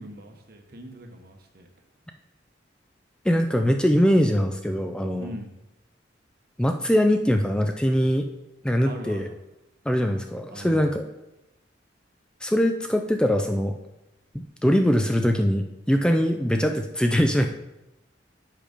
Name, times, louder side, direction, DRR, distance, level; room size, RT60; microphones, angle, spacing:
voice 1, 0.0-1.7 5.2-5.5 8.9-9.3 10.5-11.0, right 1 dB, 55° right, 4 dB, 1.1 m, -41 dB
voice 2, 3.3-5.3 6.6-8.3 8.6-9.3 9.9-11.1 12.4-13.7 14.3-17.5, equal, 5° left, 5 dB, 0.3 m, -22 dB
7.5 x 5.1 x 5.1 m, 0.93 s
head